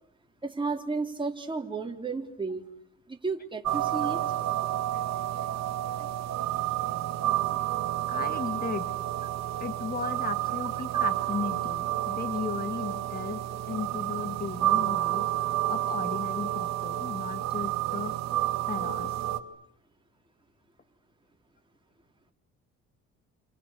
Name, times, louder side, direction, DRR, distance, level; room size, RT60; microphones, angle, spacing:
voice 1, 0.4-2.6 3.1-4.2, right 4 dB, 15° right, 2 dB, 4.2 m, -33 dB
sound 1, 3.6-19.4, right 13 dB, 60° right, 1.9 m, -30 dB
voice 2, 8.1-8.9 9.6-13.4 13.7-15.3 15.7-18.1 18.7-19.3, left 5 dB, 30° left, 10 dB, 1.8 m, -36 dB
29.5 x 28.0 x 6.8 m, 0.69 s
cardioid pair, 100°, 30 cm